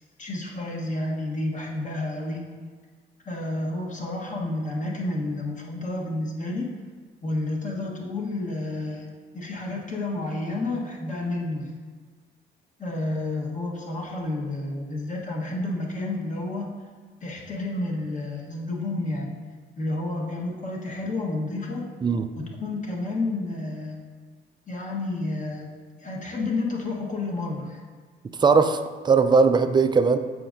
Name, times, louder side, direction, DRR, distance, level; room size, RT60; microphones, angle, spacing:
voice 1, 0.2-2.4 3.2-6.7 7.2-9.1 9.3-11.7 12.8-16.7 17.2-19.3 19.8-21.9 22.4-24.0 24.7-25.7 26.0-27.8, left 2 dB, 40° left, -1 dB, 1.2 m, -30 dB
voice 2, 28.3-30.2, right 4 dB, 25° right, 9 dB, 0.3 m, -19 dB
7.6 x 5.0 x 2.5 m, 1.5 s
cardioid pair, 90°, 20 cm